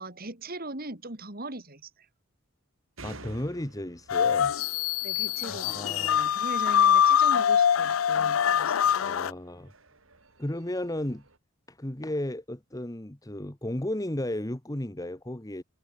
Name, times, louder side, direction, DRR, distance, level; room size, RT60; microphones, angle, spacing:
voice 1, 0.0-1.9 5.0-9.0, right 2 dB, 45° right, 4.0 m, -40 dB
voice 2, 3.0-4.5 5.4-6.2 9.0-9.7 10.4-11.2 11.7-15.6, left 1 dB, 15° left, 1.3 m, -34 dB
sound 1, 3.0-11.4, right 2 dB, 70° right, 4.8 m, -53 dB
sound 2, 4.1-9.3, left 8 dB, 75° left, 0.4 m, -24 dB
head